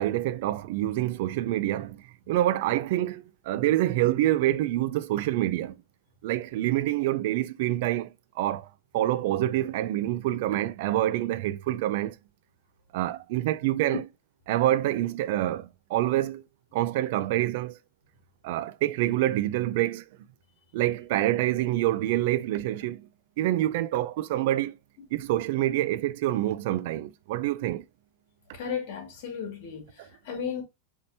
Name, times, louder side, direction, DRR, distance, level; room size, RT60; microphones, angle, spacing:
voice 1, 0.0-5.8 6.2-8.1 8.4-8.7 8.9-12.2 12.9-14.0 14.5-16.4 16.7-17.8 18.4-20.0 20.7-23.1 23.4-24.7 25.1-27.8 30.0-30.1, right 14 dB, 60° right, 0.4 m, -26 dB
voice 2, 28.5-29.9 30.2-30.6, left 7 dB, 60° left, 2.1 m, -34 dB
5.3 x 3.0 x 2.7 m
supercardioid pair, 145°, 0 cm